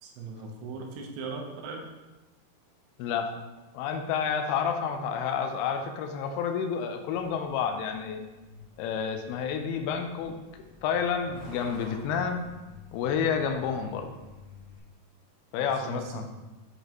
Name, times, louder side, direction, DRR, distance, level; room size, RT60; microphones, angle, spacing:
voice 1, 0.0-1.8 15.6-16.2, right 4 dB, 80° right, 1 dB, 2.8 m, -39 dB
voice 2, 3.0-3.3 3.7-8.2 8.8-10.4 10.8-12.4 12.9-14.2 15.5-16.3, left 7 dB, 80° left, 5 dB, 2.5 m, -29 dB
Truck, 7.2-14.8, left 3 dB, 55° left, 1.2 m, -50 dB
7.8 x 5.3 x 3.0 m, 1.1 s
omnidirectional pair, 4.6 m